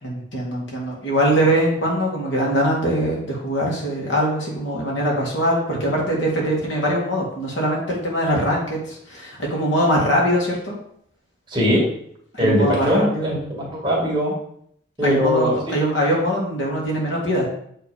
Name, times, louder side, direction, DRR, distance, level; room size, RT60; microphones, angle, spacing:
voice 1, 0.0-10.8 12.3-13.3 15.0-17.5, equal, 65° left, -2 dB, 2.3 m, -22 dB
voice 2, 11.5-11.8 12.4-14.3 15.0-15.7, equal, 25° right, -4 dB, 2.1 m, -20 dB
8.1 x 3.7 x 5.1 m, 0.68 s
head